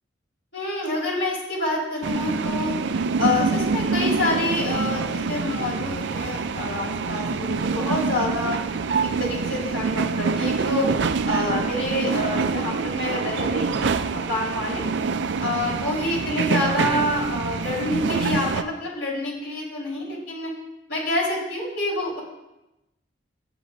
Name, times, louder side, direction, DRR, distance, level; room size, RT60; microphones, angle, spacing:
voice 1, 0.5-2.7 3.2-8.6 9.2-10.9 11.3-14.8 15.4-20.5 20.9-22.2, left 2 dB, 75° left, -4 dB, 4.0 m, -27 dB
sound 1, 2.0-18.6, right 4 dB, 70° right, 0.4 m, -25 dB
12.5 x 9.2 x 2.6 m, 0.96 s
head